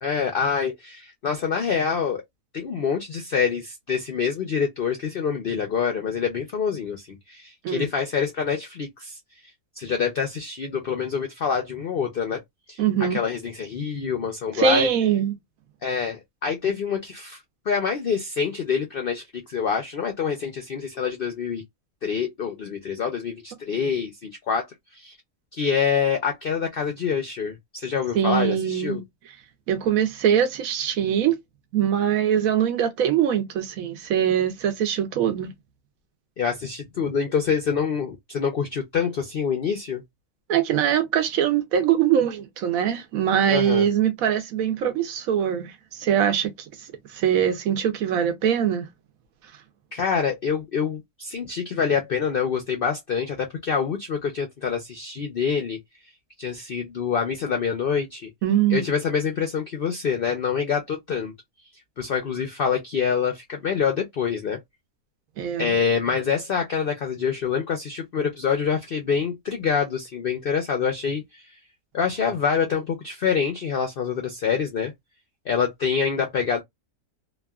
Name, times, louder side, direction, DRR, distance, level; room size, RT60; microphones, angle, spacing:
voice 1, 0.0-2.2 2.5-9.2 9.8-12.4 12.7-12.8 13.1-14.9 15.8-17.4 17.7-21.6 22.0-24.7 24.9-25.2 25.5-29.0 36.4-40.0 43.5-43.9 49.9-55.8 56.4-58.3 58.7-61.3 62.0-64.6 65.6-71.5 71.9-74.9 75.5-76.6, left 6 dB, 70° left, 0.5 m, -26 dB
voice 2, 12.8-13.2 14.6-15.4 28.1-29.0 29.7-31.3 31.7-35.5 40.5-45.7 46.0-46.5 46.8-48.9 58.4-58.9 65.4-65.8, right 9 dB, 70° right, 1.0 m, -22 dB
2.9 x 2.3 x 2.2 m
omnidirectional pair, 1.6 m